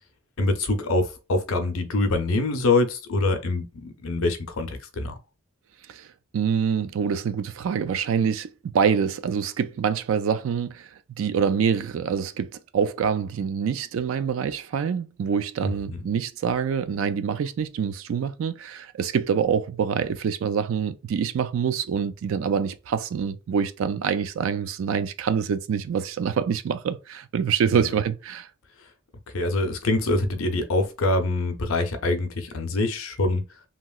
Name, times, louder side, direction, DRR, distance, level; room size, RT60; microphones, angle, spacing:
voice 1, 0.4-5.1 15.6-16.0 27.7-28.0 29.3-33.4, left 2 dB, 75° left, 0.6 m, -25 dB
voice 2, 6.3-10.9 11.2-28.5, right 7 dB, 70° right, 0.3 m, -26 dB
2.9 x 2.8 x 2.3 m
head